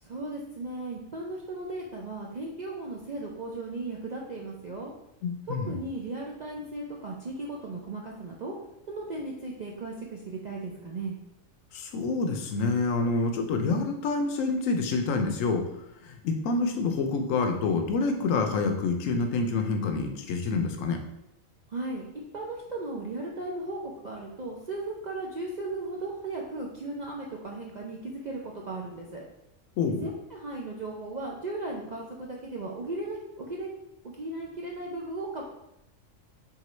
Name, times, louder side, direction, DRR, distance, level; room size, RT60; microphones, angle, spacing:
voice 1, 0.0-4.9 5.5-8.5 8.9-11.1 21.7-22.0 22.3-29.2 30.0-33.7 34.0-35.4, right 2 dB, 60° right, -2 dB, 0.4 m, -36 dB
voice 2, 5.2-5.8 11.7-15.6 16.0-21.0 29.8-30.1, left 4 dB, 80° left, 5 dB, 1.0 m, -27 dB
3.7 x 3.5 x 3.1 m, 0.83 s
omnidirectional pair, 1.3 m